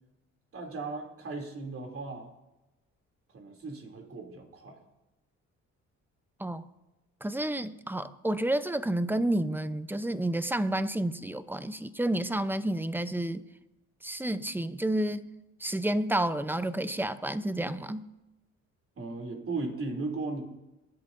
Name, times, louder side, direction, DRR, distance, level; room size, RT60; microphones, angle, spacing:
voice 1, 0.5-2.3 3.3-4.8 19.0-20.4, right 3 dB, 45° right, 2 dB, 3.0 m, -36 dB
voice 2, 7.2-13.4 14.0-15.3 15.6-18.1, right 1 dB, 5° right, 12 dB, 0.7 m, -30 dB
23.0 x 11.0 x 2.7 m, 0.99 s
cardioid pair, 90°, 30 cm